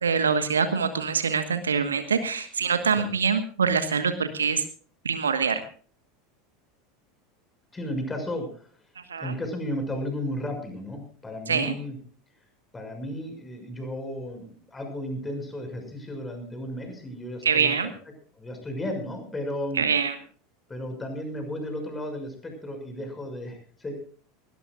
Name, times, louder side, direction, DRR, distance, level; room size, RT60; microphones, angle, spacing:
voice 1, 0.0-4.6 5.0-5.6 9.1-9.3 11.5-11.7 17.4-17.9 19.8-20.2, right 6 dB, 75° right, 10 dB, 1.3 m, -24 dB
voice 2, 7.7-8.7 9.2-12.0 12.7-17.9 18.3-19.8 20.7-23.9, left 1 dB, 15° left, 5 dB, 6.2 m, -34 dB
20.0 x 19.5 x 2.4 m, 0.43 s
figure-of-eight pair, 80°, 0 cm